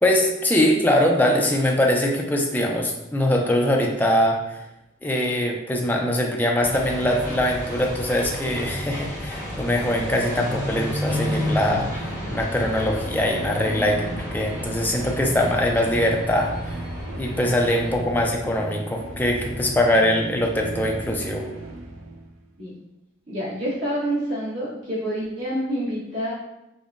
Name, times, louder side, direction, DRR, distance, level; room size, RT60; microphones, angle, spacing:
voice 1, 0.0-4.6 5.0-12.1 12.3-16.8 17.2-21.5, left 1 dB, 10° left, 0 dB, 0.3 m, -22 dB
sound 1, 6.6-18.0, left 1 dB, 20° right, 1.0 m, -31 dB
sound 2, 10.7-22.4, right 1 dB, 85° right, 0.5 m, -36 dB
voice 2, 13.6-14.1 22.6-22.7 23.3-26.3, equal, 60° right, -9 dB, 1.1 m, -28 dB
5.3 x 2.1 x 2.4 m, 0.92 s
head